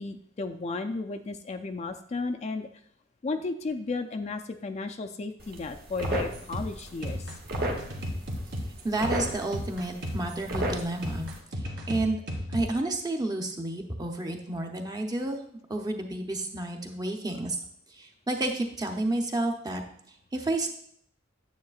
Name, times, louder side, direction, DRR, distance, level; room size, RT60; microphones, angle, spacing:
voice 1, 0.0-2.7 3.2-7.4, left 3 dB, 35° left, 6 dB, 0.4 m, -34 dB
sound 1, 5.4-11.4, right 1 dB, 50° right, 1.1 m, -36 dB
sound 2, 6.0-12.7, equal, 70° right, 1.8 m, -35 dB
voice 2, 8.8-11.3 11.9-12.2 12.5-15.4 15.7-17.6 17.9-19.8 20.3-20.7, right 2 dB, 20° right, 3 dB, 0.8 m, -30 dB
9.3 x 7.5 x 2.4 m, 0.67 s
head